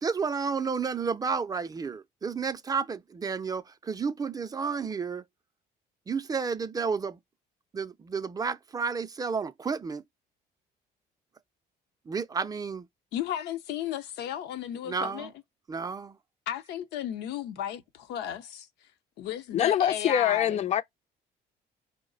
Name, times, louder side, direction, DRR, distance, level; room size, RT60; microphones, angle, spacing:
voice 1, 0.0-5.2 6.1-7.2 7.7-10.0 12.1-12.9 14.9-15.3 15.7-16.2, right 5 dB, 20° right, 0.4 m, -31 dB
voice 2, 13.1-15.3 16.5-18.7 19.2-20.6, left 11 dB, 80° left, 0.7 m, -34 dB
voice 3, 19.5-20.8, left 10 dB, 40° left, 0.4 m, -24 dB
4.7 x 2.1 x 3.8 m
cardioid pair, 110°, 17 cm